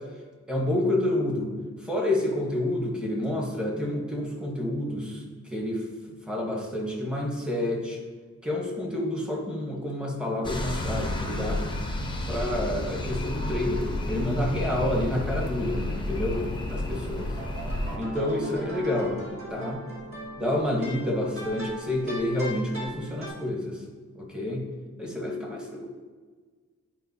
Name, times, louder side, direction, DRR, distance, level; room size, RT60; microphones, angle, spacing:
voice 1, 0.5-1.5 1.8-5.2 5.5-5.8 6.3-8.0 8.4-11.6 12.3-16.4 16.7-17.2 18.0-19.2 19.5-19.8 20.4-23.8 24.1-24.6 25.0-25.9, left 1 dB, 5° right, -1 dB, 1.0 m, -29 dB
sound 1, 10.4-18.0, left 1 dB, 15° left, 0.6 m, -31 dB
sound 2, 13.0-23.3, right 1 dB, 45° right, 1.7 m, -41 dB
10.0 x 4.6 x 2.7 m, 1.5 s
wide cardioid pair, 175°, 30 cm